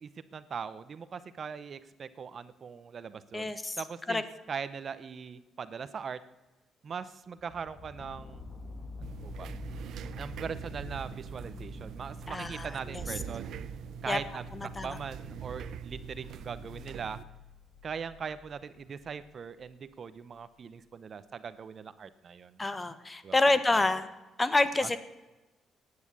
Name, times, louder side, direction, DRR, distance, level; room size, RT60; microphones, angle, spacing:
voice 1, 0.0-6.2 6.8-8.5 9.0-9.5 10.2-13.5 14.0-17.2 17.8-22.6 23.2-23.8 24.8-25.0, right 6 dB, 50° right, 14 dB, 0.8 m, -41 dB
voice 2, 3.3-3.8 4.1-4.2 12.3-13.0 14.1-14.2 14.8-14.9 22.6-24.1 24.4-25.0, left 2 dB, 20° left, 13 dB, 1.3 m, -27 dB
sound 1, 7.4-19.8 20.3-20.4, left 3 dB, 45° left, 2.7 m, -48 dB
sound 2, 9.0-17.2, right 9 dB, 75° right, 0.6 m, -43 dB
15.5 x 9.7 x 8.3 m, 1.1 s
cardioid pair, 90°, 0 cm